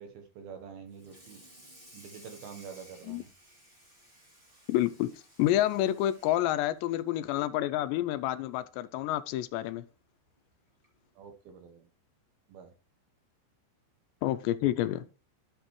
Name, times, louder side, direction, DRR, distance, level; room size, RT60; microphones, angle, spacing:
voice 1, 0.0-1.4 1.9-3.3 11.2-11.9 12.5-12.7, right 7 dB, 70° right, 2.4 m, -47 dB
Water tap faucet / Sink (filling or washing), 0.9-7.6 7.9-8.2 8.5-8.6 9.1-9.2 10.3-10.4 10.8-11.1, equal, 20° right, 1.3 m, -56 dB
voice 2, 4.7-9.9 14.2-15.3, left 13 dB, 85° left, 2.7 m, -29 dB
12.0 x 7.3 x 3.1 m
omnidirectional pair, 5.2 m